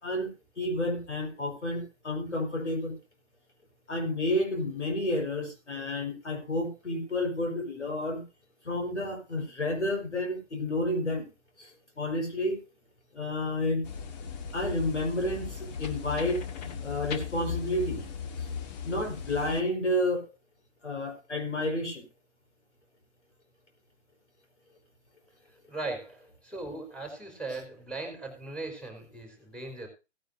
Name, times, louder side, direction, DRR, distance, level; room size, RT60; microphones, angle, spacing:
voice 1, 0.6-3.0 3.9-8.2 8.6-11.3 11.6-12.6 13.1-13.8 14.5-18.0 18.8-20.3 20.8-22.0, left 1 dB, 80° left, 4 dB, 5.1 m, -30 dB
sound 1, 13.8-19.6, left 6 dB, 35° left, 1.7 m, -37 dB
voice 2, 25.7-29.9, right 2 dB, ahead, 4 dB, 4.5 m, -38 dB
17.5 x 10.0 x 2.7 m, 0.29 s
figure-of-eight pair, 115°, 35 cm